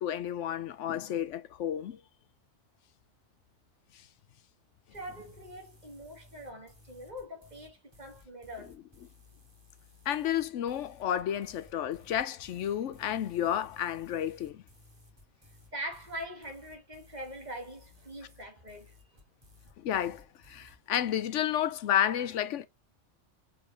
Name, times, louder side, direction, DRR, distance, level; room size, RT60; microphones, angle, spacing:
voice 1, 0.0-2.0 10.1-14.6 19.8-22.7, left 10 dB, 80° left, 1.0 m, -31 dB
sound 1, 4.9-20.8, left 2 dB, 20° right, 2.6 m, -58 dB
voice 2, 4.9-8.7 15.7-19.2, equal, 35° right, 1.9 m, -43 dB
5.1 x 5.0 x 5.3 m
omnidirectional pair, 1.2 m